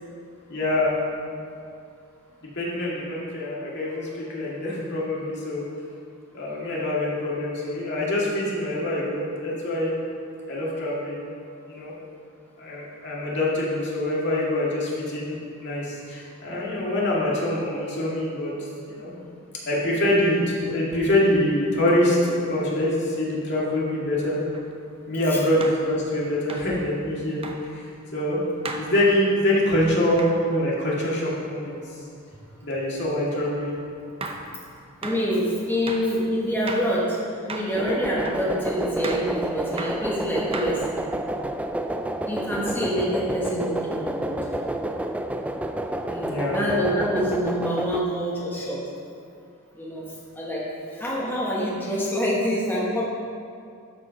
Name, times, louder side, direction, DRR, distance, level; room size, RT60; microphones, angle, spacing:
voice 1, 0.5-0.9 2.6-5.6 6.3-9.9 10.5-11.2 11.7-11.9 12.6-18.5 18.9-19.1 19.7-24.4 25.0-27.8 28.1-28.4 28.8-31.8 32.6-33.7 46.3-46.6, left 1 dB, 55° left, -5 dB, 2.2 m, -25 dB
sound 1, 24.5-24.7 25.6-25.8 26.5-26.7 27.4-27.6 28.6-28.9 30.2-30.4 33.4-33.6 34.2-34.5 35.0-35.2 35.9-36.1 36.7-36.9 37.5-37.8 38.2-38.5 39.0-39.3 39.8-40.0 40.5-41.0, right 3 dB, 25° right, 0.7 m, -34 dB
voice 2, 35.0-41.0 42.3-44.5 46.1-48.8 49.7-50.7 50.9-53.1, equal, 10° left, -6 dB, 1.3 m, -26 dB
sound 2, 37.8-48.0, right 1 dB, 5° right, 0.3 m, -30 dB
12.5 x 5.0 x 5.1 m, 2.4 s
head